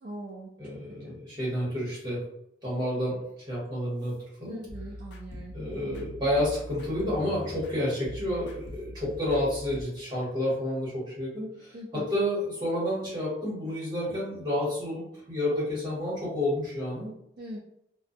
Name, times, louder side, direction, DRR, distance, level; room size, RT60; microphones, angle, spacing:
voice 1, 0.0-0.5 1.0-1.1 4.5-5.5 11.7-12.0 17.4-17.6, right 1 dB, 50° right, -4 dB, 0.4 m, -41 dB
voice 2, 0.6-2.2 2.6-3.2 3.5-4.1 4.4-4.6 5.5-17.1, left 1 dB, 20° right, -7 dB, 1.3 m, -30 dB
sound 1, 4.7-9.8, left 1 dB, 70° left, 0.4 m, -42 dB
2.5 x 2.2 x 2.4 m, 0.78 s
head